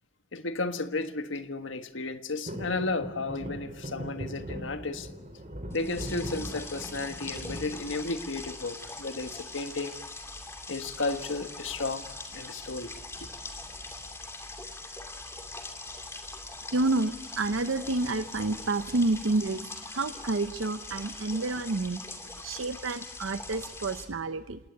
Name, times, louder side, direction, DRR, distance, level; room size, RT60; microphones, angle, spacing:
voice 1, 0.3-5.1 5.7-10.0 10.7-12.1 12.3-12.9, left 3 dB, 75° left, 1.5 m, -33 dB
sound 1, 2.4-8.6 9.1-9.7 10.9-11.4 11.6-11.7 12.0-12.3 13.1-14.1 14.5-14.6, equal, 35° right, 2.7 m, -40 dB
sound 2, 5.7-24.1, left 2 dB, 15° left, 2.6 m, -42 dB
voice 2, 16.7-22.0 22.4-24.6, right 2 dB, 85° right, 0.7 m, -29 dB
27.5 x 18.5 x 8.7 m
head